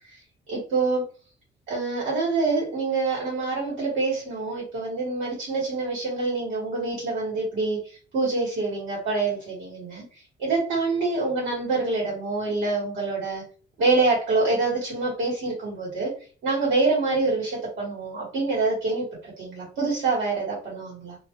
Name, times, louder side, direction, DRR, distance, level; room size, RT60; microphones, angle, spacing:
voice 1, 0.5-1.0 1.7-7.8 8.1-10.0 10.4-13.4 13.8-16.1 16.4-21.1, right 3 dB, 75° right, -4 dB, 1.6 m, -26 dB
2.8 x 2.4 x 3.0 m, 0.38 s
cardioid pair, 90°, 20 cm